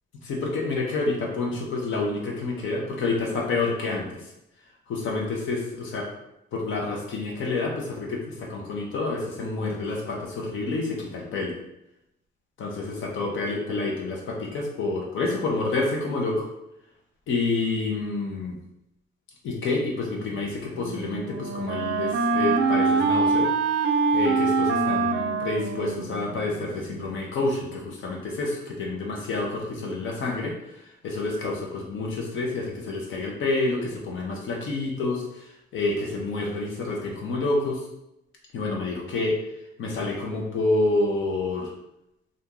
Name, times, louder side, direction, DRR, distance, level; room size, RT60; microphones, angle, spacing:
voice 1, 0.2-4.2 4.9-6.1 6.5-11.5 12.6-16.5 17.3-18.6 19.4-23.5 24.1-30.5 31.0-35.2 35.7-37.8 38.5-39.4 39.8-41.7, left 3 dB, 75° left, -1 dB, 1.0 m, -28 dB
Wind instrument woodwind instrument, 20.7-26.6, right 4 dB, 75° right, 0.4 m, -24 dB
2.9 x 2.6 x 3.6 m, 0.85 s
cardioid pair, 90°, 20 cm